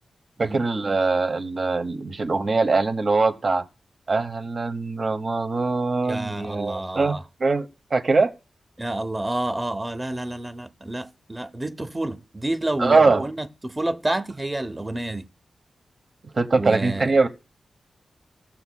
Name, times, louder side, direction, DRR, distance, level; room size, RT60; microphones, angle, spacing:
voice 1, 0.4-3.6 4.1-8.3 12.8-13.3 16.3-17.3, right 3 dB, 45° right, 1.0 m, -22 dB
voice 2, 6.0-7.2 8.8-15.2 16.6-17.1, right 1 dB, 15° right, 0.7 m, -29 dB
17.5 x 7.2 x 2.3 m
wide cardioid pair, 145°, 0 cm